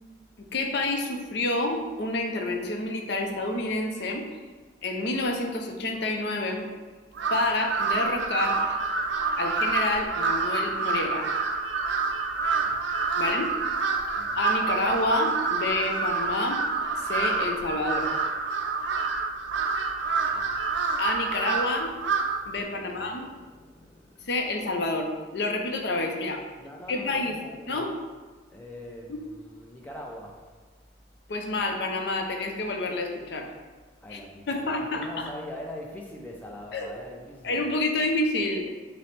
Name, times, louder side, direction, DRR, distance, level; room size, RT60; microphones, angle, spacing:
voice 1, 0.4-4.2 4.8-6.7 7.3-8.6 9.4-11.3 13.1-13.6 14.3-16.6 16.9-18.1 21.0-21.9 22.5-23.3 24.2-26.4 26.9-27.3 27.7-28.0 29.1-29.2 31.3-33.5 34.1-34.2 34.5-35.3 36.7-36.9 37.4-38.7, left 2 dB, 60° left, 3 dB, 0.5 m, -28 dB
Crow, 7.1-22.5, right 4 dB, 70° right, 0.4 m, -27 dB
voice 2, 22.7-24.3 26.6-27.8 28.5-30.4 34.0-37.6, left 1 dB, 10° left, -1 dB, 0.4 m, -43 dB
5.6 x 2.0 x 3.2 m, 1.4 s
head